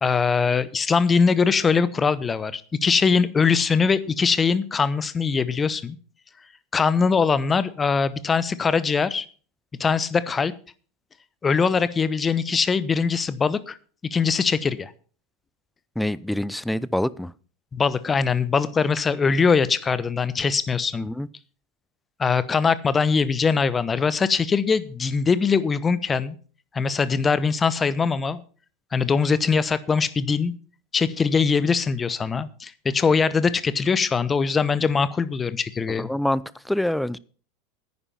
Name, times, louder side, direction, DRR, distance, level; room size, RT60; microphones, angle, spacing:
voice 1, 0.0-6.0 6.7-9.2 9.8-10.5 11.4-13.8 14.1-14.9 17.7-21.1 22.2-26.4 26.7-28.4 28.9-30.5 30.9-36.1, left 5 dB, 20° left, 16 dB, 0.9 m, -22 dB
voice 2, 16.0-17.3 21.0-21.3 35.9-37.2, left 1 dB, 5° left, 20 dB, 0.5 m, -26 dB
10.0 x 9.7 x 5.7 m, 0.42 s
figure-of-eight pair, 80°, 0 cm